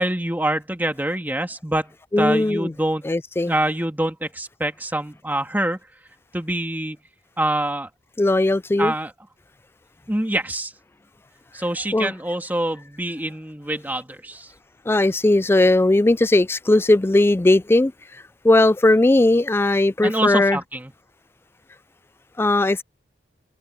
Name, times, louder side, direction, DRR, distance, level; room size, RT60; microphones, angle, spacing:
voice 1, 0.0-3.1 3.5-5.8 6.3-7.0 7.4-7.9 8.8-9.1 10.1-10.7 11.5-14.5 20.0-20.9, right 1 dB, 10° right, 2.4 m, -25 dB
voice 2, 2.1-2.7 3.0-3.5 8.2-8.9 11.9-12.1 14.9-17.9 18.4-20.6 22.4-22.8, left 2 dB, 15° left, 0.3 m, -18 dB
head